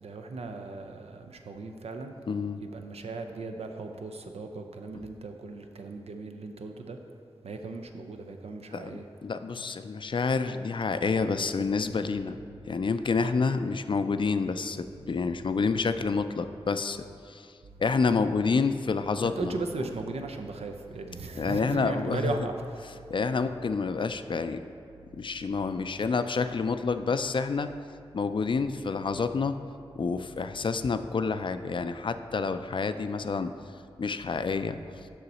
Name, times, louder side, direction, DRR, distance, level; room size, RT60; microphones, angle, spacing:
voice 1, 0.0-2.1 2.7-7.0 7.4-9.0 19.2-22.5, right 3 dB, 85° right, 5 dB, 0.5 m, -37 dB
voice 2, 2.3-2.6 8.7-12.4 12.7-17.5 17.8-19.5 21.4-22.3 23.1-24.6 25.2-27.7 28.1-29.6 30.0-33.5 34.0-34.8, left 4 dB, 55° left, 10 dB, 0.3 m, -28 dB
6.8 x 5.6 x 4.1 m, 2.3 s
cardioid pair, 45°, 10 cm